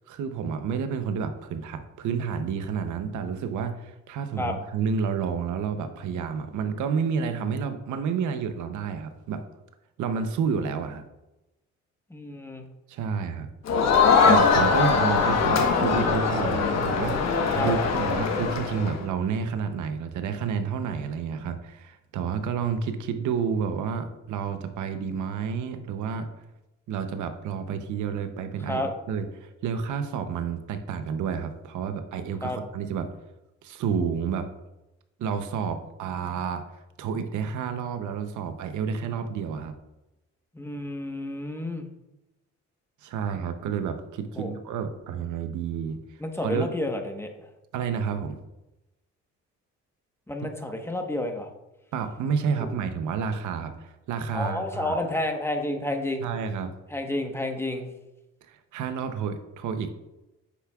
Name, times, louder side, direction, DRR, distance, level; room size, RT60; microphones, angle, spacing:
voice 1, 0.1-9.4 10.0-11.0 12.9-13.5 14.2-26.3 26.9-33.1 33.6-34.5 35.2-36.6 37.0-39.7 43.0-46.7 47.7-48.4 51.9-55.0 56.2-56.7 58.5-59.9, right 6 dB, 75° right, 8 dB, 0.8 m, -30 dB
voice 2, 12.1-12.6 17.5-17.7 28.7-28.9 32.4-32.6 40.5-41.9 44.3-44.5 46.2-47.5 50.3-51.5 52.6-52.7 54.3-56.2 56.9-57.9, left 1 dB, 10° left, 3 dB, 1.2 m, -30 dB
Crowd, 13.7-19.0, left 5 dB, 60° left, 1.2 m, -22 dB
9.3 x 6.9 x 2.4 m, 0.96 s
cardioid pair, 90°, 30 cm